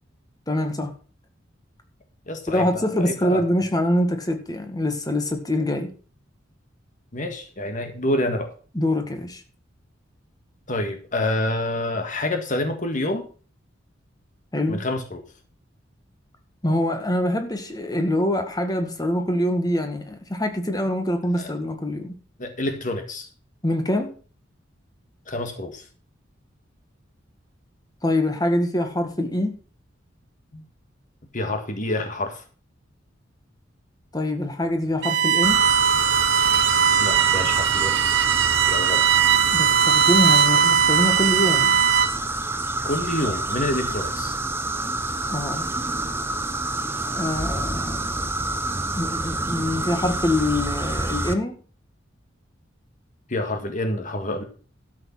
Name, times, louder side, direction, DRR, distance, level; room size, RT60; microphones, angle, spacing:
voice 1, 0.5-0.9 2.5-5.9 8.7-9.4 14.5-14.8 16.6-22.1 23.6-24.1 28.0-29.5 34.1-35.6 39.5-41.8 45.3-45.7 47.1-48.3 48.9-51.6, left 1 dB, 20° left, 1.8 m, -24 dB
voice 2, 2.3-3.4 7.1-8.5 10.7-13.3 14.7-15.2 21.4-21.5 22.4-23.3 25.3-25.8 30.5-30.6 31.3-32.4 37.0-38.0 38.6-39.0 42.8-44.3 53.3-54.4, left 1 dB, 40° left, 1.7 m, -27 dB
Bowed string instrument, 35.0-42.3, right 8 dB, 65° right, 0.8 m, -19 dB
sound 1, 35.4-51.3, right 2 dB, 10° right, 0.9 m, -28 dB
12.5 x 6.5 x 5.9 m
head